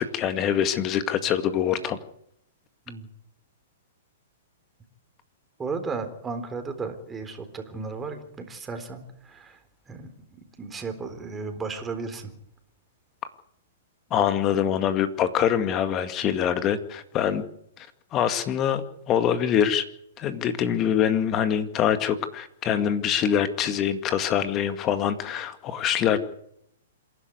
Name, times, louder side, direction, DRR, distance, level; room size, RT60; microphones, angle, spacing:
voice 1, 0.0-2.0 14.1-17.4 17.8-17.9 18.1-19.8 20.2-26.2, left 9 dB, 30° left, 10 dB, 2.1 m, -24 dB
voice 2, 5.6-9.6 9.9-10.1 10.6-12.3, right 4 dB, 15° right, 6 dB, 3.7 m, -34 dB
26.5 x 11.5 x 9.6 m, 0.73 s
hypercardioid pair, 135°, 0 cm